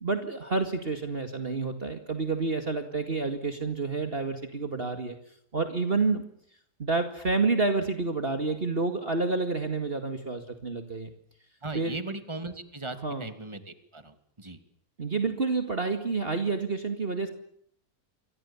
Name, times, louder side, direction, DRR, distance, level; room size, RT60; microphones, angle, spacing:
voice 1, 0.0-5.2 5.5-6.3 6.8-11.1 11.7-12.0 13.0-13.3 15.0-17.3, right 3 dB, 35° right, 7 dB, 2.4 m, -29 dB
voice 2, 11.6-14.6, right 2 dB, 15° right, 9 dB, 2.7 m, -38 dB
29.0 x 24.5 x 7.3 m, 0.67 s
omnidirectional pair, 1.7 m